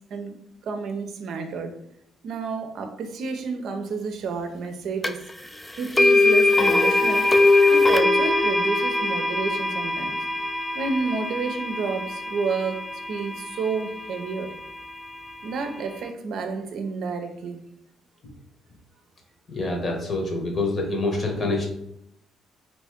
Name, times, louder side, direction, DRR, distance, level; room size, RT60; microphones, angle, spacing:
voice 1, 0.6-1.7 2.2-5.2 5.8-7.2 7.7-10.2 10.7-14.5 15.4-17.6, right 4 dB, 70° right, 6 dB, 0.5 m, -30 dB
sound 1, 5.0-5.1 6.0-14.0, left 2 dB, 10° left, 0.4 m, -21 dB
voice 2, 19.5-21.7, left 2 dB, 45° left, 1 dB, 1.1 m, -26 dB
3.0 x 2.6 x 3.5 m, 0.76 s
supercardioid pair, 60°, 0 cm